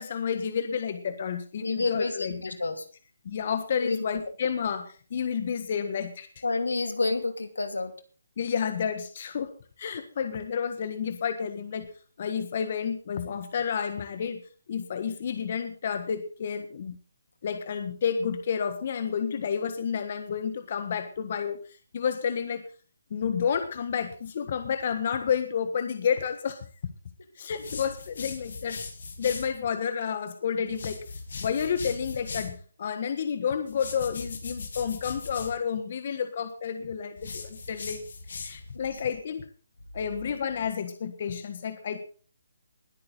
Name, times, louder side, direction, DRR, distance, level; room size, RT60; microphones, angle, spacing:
voice 1, 0.0-2.6 3.2-6.3 8.4-9.5 9.8-11.9 12.2-14.4 14.7-17.0 17.4-21.6 21.9-22.6 23.1-26.7 27.4-28.8 29.2-31.0 31.4-38.0 38.4-39.5 39.9-42.0, left 7 dB, 45° left, 9 dB, 1.6 m, -30 dB
voice 2, 1.6-2.8 3.8-4.0 6.4-7.9, left 3 dB, 90° left, 8 dB, 2.8 m, -29 dB
sound 1, 27.5-29.5 30.7-32.6 33.7-35.6 37.2-38.8, left 4 dB, 65° left, 3.6 m, -39 dB
20.5 x 8.9 x 4.0 m, 0.40 s
hypercardioid pair, 155°, 0 cm